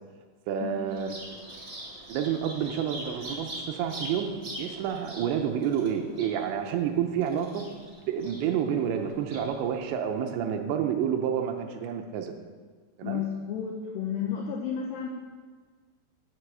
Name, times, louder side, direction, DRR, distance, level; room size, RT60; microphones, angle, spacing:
voice 1, 0.5-1.2 2.1-4.3 4.6-7.7 8.0-12.3 13.0-13.2, right 8 dB, 80° right, 5 dB, 2.8 m, -29 dB
Bird vocalization bird call bird song, 0.9-9.9, right 1 dB, 25° right, 1.2 m, -43 dB
voice 2, 13.0-15.1, left 8 dB, 75° left, 1 dB, 2.6 m, -32 dB
10.5 x 8.0 x 7.4 m, 1.5 s
omnidirectional pair, 5.6 m